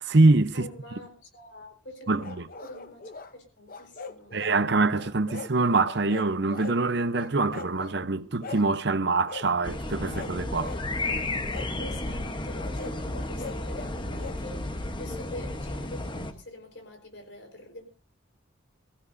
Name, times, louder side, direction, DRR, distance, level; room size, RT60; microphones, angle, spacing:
voice 1, 0.0-0.7 2.1-2.3 4.3-10.8, right 3 dB, 65° right, 0.8 m, -24 dB
voice 2, 0.5-4.3 11.8-17.8, left 1 dB, 70° left, 4.6 m, -45 dB
sound 1, 2.2-3.3 3.7-4.6 4.9-5.5 5.8-6.8 7.1-8.0 8.4-8.7 9.3-9.5 10.0-10.8 11.5-11.7 12.5-14.4, left 4 dB, 50° left, 0.8 m, -41 dB
sound 2, 9.6-16.3, left 2 dB, 25° left, 1.1 m, -33 dB
23.0 x 15.5 x 2.7 m
head